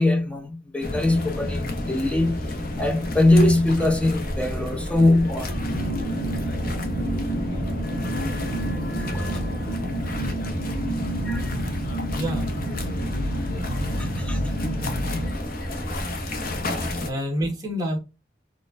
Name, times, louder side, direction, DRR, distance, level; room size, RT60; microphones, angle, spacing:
voice 1, 0.0-2.5 2.8-5.6 9.0-9.3 11.2-11.6 14.0-14.4, left 2 dB, 5° left, 0.6 m, -22 dB
sound 1, 0.8-17.1, left 1 dB, 50° left, 0.8 m, -31 dB
sound 2, 5.5-15.4, right 1 dB, 50° right, 1.3 m, -29 dB
voice 2, 12.1-12.5 17.0-18.0, equal, 20° right, 1.2 m, -27 dB
4.1 x 2.4 x 2.4 m
head